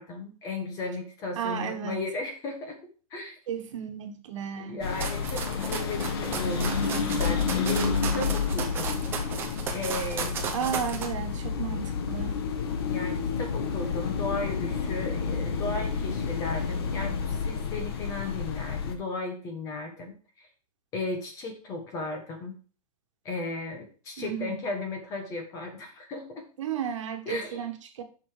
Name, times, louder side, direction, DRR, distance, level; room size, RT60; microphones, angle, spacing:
voice 1, 0.0-2.8 3.1-3.4 4.7-8.9 9.7-10.4 12.9-20.5 20.9-22.6 23.2-26.5 27.3-27.6, left 3 dB, 15° left, 4 dB, 1.2 m, -35 dB
voice 2, 1.3-2.1 3.5-4.8 10.5-12.4 24.2-24.6 26.6-28.0, right 8 dB, 55° right, 6 dB, 1.6 m, -33 dB
sound 1, 4.8-18.9, left 5 dB, 40° left, 1.3 m, -30 dB
sound 2, 5.0-11.1, right 6 dB, 10° right, 0.9 m, -34 dB
7.8 x 6.0 x 4.9 m, 0.38 s
hypercardioid pair, 175°, 19 cm